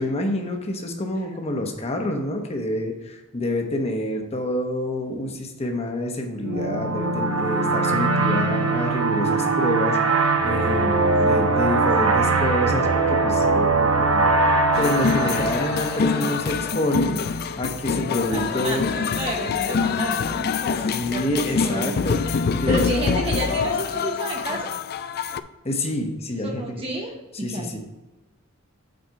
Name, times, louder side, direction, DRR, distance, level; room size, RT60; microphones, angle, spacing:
voice 1, 0.0-10.0 10.4-14.4 14.8-18.9 20.9-22.9 25.6-26.8 27.3-27.8, left 1 dB, 30° left, 3 dB, 1.0 m, -27 dB
sound 1, 6.4-16.8, right 3 dB, 85° right, 0.9 m, -21 dB
voice 2, 11.2-11.8 15.2-15.3 18.3-22.0 22.7-24.7 26.4-27.8, right 1 dB, 25° right, -1 dB, 0.8 m, -31 dB
sound 2, 14.7-25.4, left 5 dB, 50° left, 0.3 m, -25 dB
7.8 x 4.4 x 4.6 m, 1.1 s
head